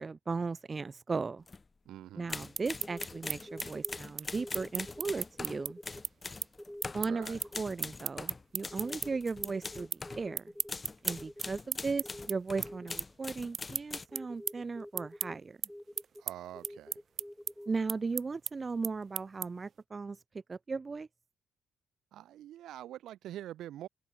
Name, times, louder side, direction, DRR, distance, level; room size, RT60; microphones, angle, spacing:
voice 1, 0.0-1.4 2.1-5.8 6.9-10.5 11.0-15.6 17.7-20.2 20.5-21.1, right 4 dB, 30° right, 0.7 m, -36 dB
sound 1, 1.5-1.6 2.3-10.3 10.7-14.1, left 3 dB, 25° left, 3.2 m, -43 dB
voice 2, 1.9-2.3 7.0-7.4 16.2-17.0 22.1-23.9, right 12 dB, 80° right, 3.8 m, -45 dB
sound 2, 2.5-9.1 9.4-10.0 10.3-19.7, right 7 dB, 55° right, 1.4 m, -37 dB
sound 3, 2.6-4.1 4.3-5.0 5.3-6.0 6.6-7.6 8.7-10.7 11.1-11.6 12.0-13.1 14.1-15.4 15.7-16.2 16.5-17.7, equal, 5° left, 2.2 m, -48 dB
cardioid pair, 90°, 0 cm